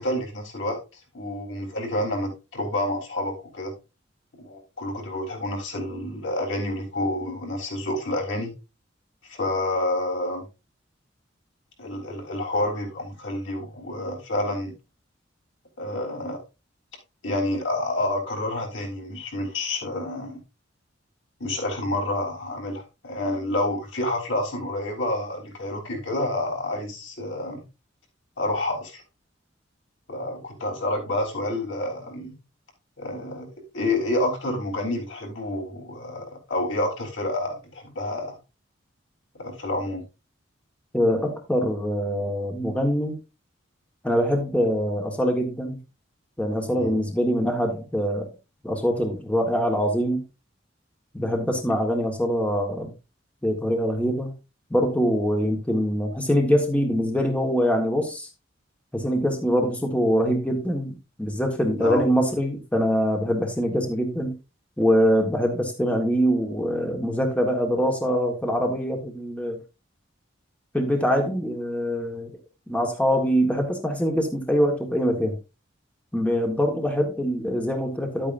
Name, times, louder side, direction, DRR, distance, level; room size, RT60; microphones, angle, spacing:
voice 1, 0.0-3.7 4.4-8.5 9.2-10.4 11.8-14.7 15.8-16.4 17.2-20.4 21.4-27.6 28.4-29.0 30.1-32.4 33.0-33.5 33.7-38.4 39.4-40.0 46.7-46.9 61.8-62.1, left 1 dB, 70° left, 1 dB, 3.7 m, -29 dB
voice 2, 40.9-43.2 44.0-45.8 46.4-48.3 48.6-50.2 51.1-52.9 53.4-54.3 54.7-58.3 58.9-64.3 64.8-69.6 70.7-72.3 72.7-75.4 76.1-78.3, equal, 5° left, 2 dB, 1.5 m, -24 dB
11.0 x 8.8 x 2.6 m, 0.28 s
head